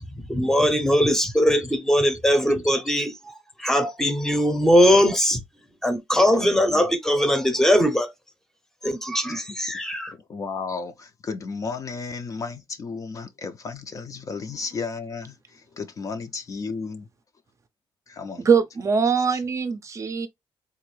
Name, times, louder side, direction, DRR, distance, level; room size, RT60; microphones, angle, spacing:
voice 1, 0.3-5.4 5.8-8.1 8.8-10.1, equal, 5° left, 0.7 m, -20 dB
voice 2, 6.4-6.8 9.3-9.6 10.1-17.1 18.1-18.5, left 4 dB, 35° left, 0.4 m, -34 dB
voice 3, 18.4-20.3, right 6 dB, 35° right, 0.5 m, -22 dB
3.7 x 2.5 x 3.1 m
cardioid pair, 130°, 9 cm